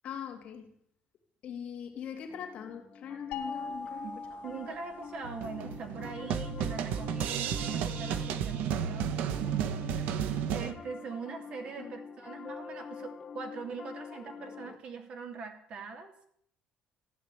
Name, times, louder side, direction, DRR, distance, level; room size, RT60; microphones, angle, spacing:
voice 1, 0.0-0.8 1.4-4.4 11.8-11.9, left 8 dB, 45° left, 3.0 m, -42 dB
Piano, 2.3-14.8, left 6 dB, 25° left, 1.2 m, -46 dB
sound 1, 3.3-5.6, left 4 dB, 70° left, 2.2 m, -41 dB
voice 2, 4.4-9.5 9.9-16.1, right 5 dB, 40° right, 2.9 m, -42 dB
sound 2, 5.2-10.7, right 8 dB, 70° right, 1.2 m, -33 dB
15.5 x 11.5 x 8.4 m
cardioid pair, 175°, 3 cm